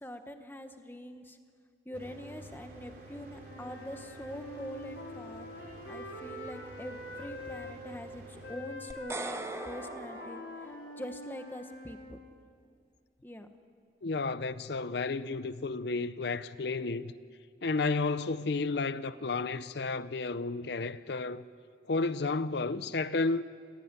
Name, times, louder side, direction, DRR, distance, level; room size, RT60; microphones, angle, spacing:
voice 1, 0.0-1.4 1.8-5.4 5.9-10.4 11.0-12.2 13.2-13.5, left 1 dB, 10° left, 1.2 m, -44 dB
Mechanical fan, 1.9-8.5, right 2 dB, 50° right, 4.3 m, -50 dB
Wind instrument woodwind instrument, 3.3-7.7 8.4-12.1, left 1 dB, 75° left, 4.0 m, -44 dB
sound 1, 8.9-11.2, right 2 dB, 15° right, 0.7 m, -42 dB
voice 2, 14.0-17.1 17.6-21.4 21.9-23.4, left 3 dB, 60° left, 0.6 m, -32 dB
27.5 x 16.5 x 9.7 m
head